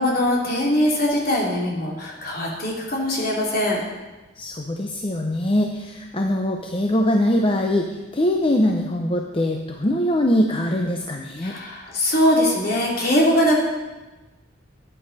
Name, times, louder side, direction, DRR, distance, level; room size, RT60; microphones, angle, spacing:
voice 1, 0.0-3.8 11.4-13.6, left 1 dB, 50° left, -3 dB, 3.1 m, -21 dB
voice 2, 4.4-11.5, left 1 dB, 30° left, 2 dB, 0.7 m, -22 dB
15.0 x 10.0 x 4.2 m, 1.1 s
head